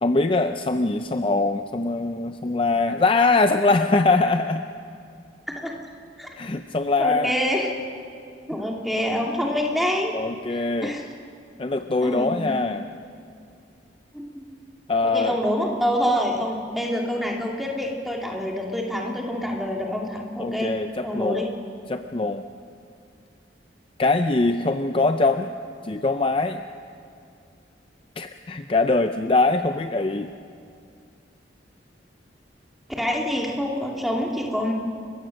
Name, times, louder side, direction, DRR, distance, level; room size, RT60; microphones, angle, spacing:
voice 1, 0.0-4.6 6.4-7.3 10.1-10.9 11.6-12.8 14.9-15.4 20.4-21.4 21.9-22.4 24.0-25.5 25.8-26.6 28.2-30.3, left 3 dB, 30° left, 8 dB, 0.5 m, -22 dB
voice 2, 7.0-7.7 8.5-10.2 10.5-11.0 12.0-12.5 14.1-14.5 15.0-20.7 21.0-21.5 33.0-34.7, equal, ahead, -1 dB, 2.2 m, -26 dB
30.0 x 15.5 x 6.4 m, 2.4 s
head